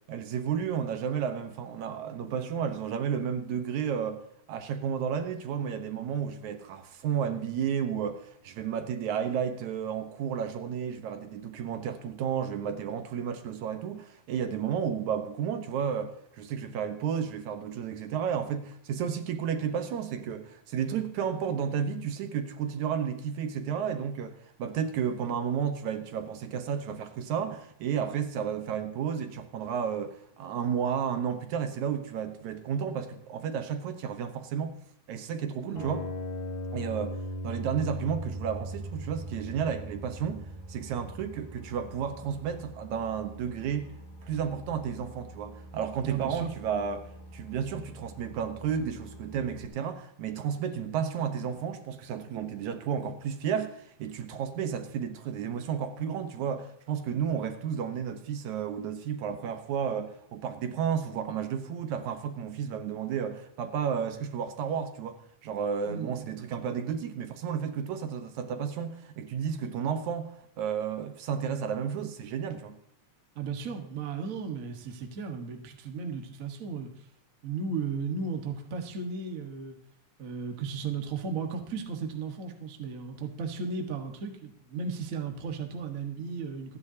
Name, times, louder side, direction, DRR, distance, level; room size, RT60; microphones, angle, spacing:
voice 1, 0.1-4.2 4.5-34.8 35.1-36.1 36.7-37.2 37.4-43.9 44.3-47.1 47.3-72.8, right 7 dB, 70° right, 8 dB, 2.4 m, -32 dB
voice 2, 35.6-35.9 46.0-46.5 65.9-66.3 73.3-76.9 77.4-79.8 80.2-86.8, right 5 dB, 40° right, 4 dB, 1.2 m, -35 dB
sound 1, 35.8-41.8, equal, 70° left, 8.5 m, -38 dB
Boat Water vehicle, 38.1-49.7, right 1 dB, 15° left, 2.7 m, -48 dB
27.0 x 10.5 x 2.8 m, 0.70 s
omnidirectional pair, 3.6 m